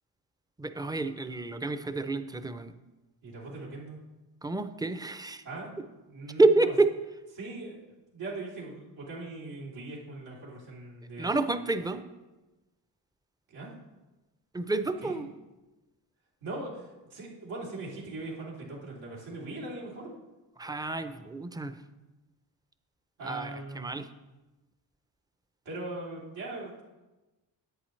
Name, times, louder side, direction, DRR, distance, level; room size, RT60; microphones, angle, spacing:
voice 1, 0.6-2.7 4.4-5.4 6.4-6.9 11.2-12.0 14.5-15.3 20.6-21.7 23.2-24.1, right 3 dB, 10° right, 9 dB, 0.5 m, -28 dB
voice 2, 3.2-4.0 5.4-5.7 6.1-6.7 7.3-11.3 13.5-13.7 15.0-15.2 16.4-20.1 23.2-23.9 25.6-26.8, right 2 dB, 85° right, -5 dB, 3.2 m, -40 dB
11.0 x 8.3 x 3.2 m, 1.1 s
cardioid pair, 80°, 45 cm